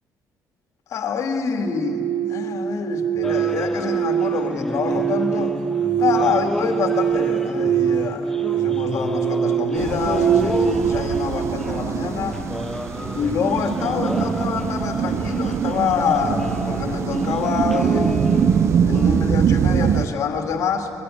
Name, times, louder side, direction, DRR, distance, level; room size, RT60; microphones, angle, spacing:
voice 1, 0.9-2.0 2.3-5.6 5.9-12.5 13.1-20.9, left 5 dB, 50° left, 5 dB, 2.1 m, -26 dB
sound 1, 1.6-12.6, right 9 dB, 80° right, 0.6 m, -24 dB
sound 2, 3.2-19.4, left 1 dB, 5° left, 0.5 m, -31 dB
sound 3, 9.8-20.1, right 8 dB, 40° right, 0.6 m, -23 dB
22.0 x 21.5 x 9.8 m, 2.8 s
cardioid pair, 175°, 7 cm